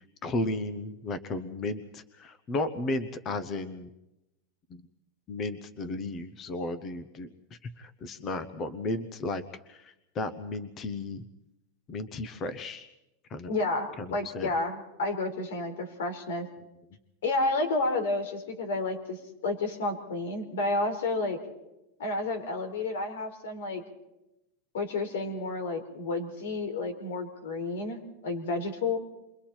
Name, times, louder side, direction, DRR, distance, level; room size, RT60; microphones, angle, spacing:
voice 1, 0.0-3.9 4.7-4.8 5.3-11.2 11.9-12.9 13.3-13.5 14.0-14.5, left 2 dB, 20° left, 12 dB, 0.8 m, -34 dB
voice 2, 13.5-16.5 17.2-21.4 22.0-23.8 24.7-29.0, left 2 dB, 80° left, 6 dB, 4.5 m, -31 dB
28.5 x 23.0 x 4.4 m, 0.91 s
supercardioid pair, 175°, 0 cm